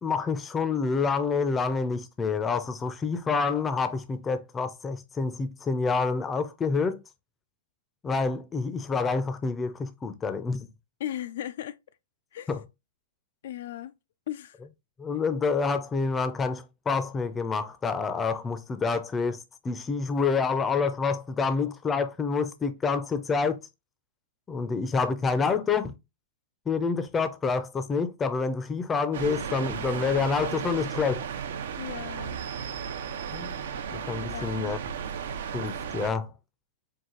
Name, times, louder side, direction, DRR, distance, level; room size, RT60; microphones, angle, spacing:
voice 1, 0.0-7.0 8.0-10.7 12.5-12.6 15.0-23.6 24.5-26.0 26.7-31.3 33.3-33.6 33.9-34.8 35.5-36.3, left 4 dB, 15° left, 0.5 m, -28 dB
voice 2, 11.0-11.8 12.3-12.6 13.4-13.9 14.3-14.6 31.8-32.5 34.2-34.7, left 12 dB, 65° left, 0.3 m, -36 dB
sound 1, 29.1-36.1, right 7 dB, 70° right, 0.7 m, -34 dB
4.7 x 2.4 x 3.7 m
hypercardioid pair, 140°, 0 cm